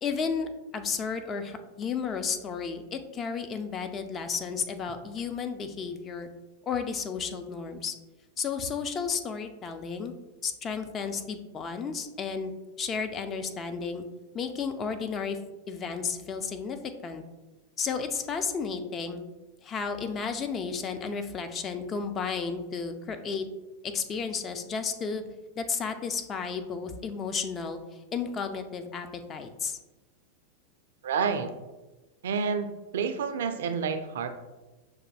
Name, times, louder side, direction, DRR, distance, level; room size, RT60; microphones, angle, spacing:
voice 1, 0.0-6.3 6.7-7.9 8.4-10.1 10.4-12.5 12.8-14.0 14.3-15.4 15.7-17.2 17.8-19.2 19.6-23.5 23.8-25.3 25.6-29.8, left 5 dB, 25° left, 7 dB, 0.3 m, -33 dB
voice 2, 31.0-31.5 32.2-32.7 32.9-34.3, right 6 dB, 60° right, 8 dB, 0.3 m, -28 dB
6.0 x 2.5 x 2.2 m, 1.1 s
figure-of-eight pair, 90°, 0 cm